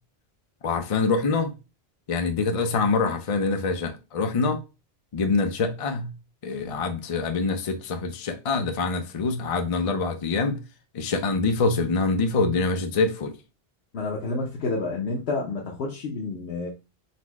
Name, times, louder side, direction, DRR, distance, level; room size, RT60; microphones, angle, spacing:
voice 1, 0.6-1.5 2.1-4.6 5.1-6.1 6.4-10.6 10.9-13.3, left 4 dB, 45° left, 0.5 m, -25 dB
voice 2, 13.9-16.7, left 3 dB, 80° left, 1.0 m, -29 dB
4.1 x 2.0 x 4.5 m
omnidirectional pair, 1.0 m